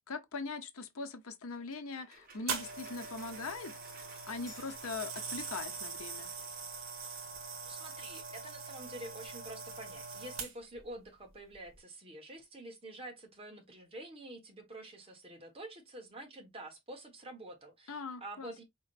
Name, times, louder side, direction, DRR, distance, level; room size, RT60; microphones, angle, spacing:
voice 1, 0.1-6.3 17.9-18.6, left 4 dB, 80° left, 0.8 m, -42 dB
sound 1, 1.5-7.2, right 3 dB, 45° right, 1.4 m, -59 dB
sound 2, 2.5-10.8 11.5-11.8, right 5 dB, 70° right, 1.7 m, -42 dB
voice 2, 7.6-18.6, right 1 dB, 25° right, 1.3 m, -48 dB
sound 3, 11.2-11.6, left 1 dB, ahead, 2.3 m, -65 dB
4.9 x 3.7 x 2.5 m
head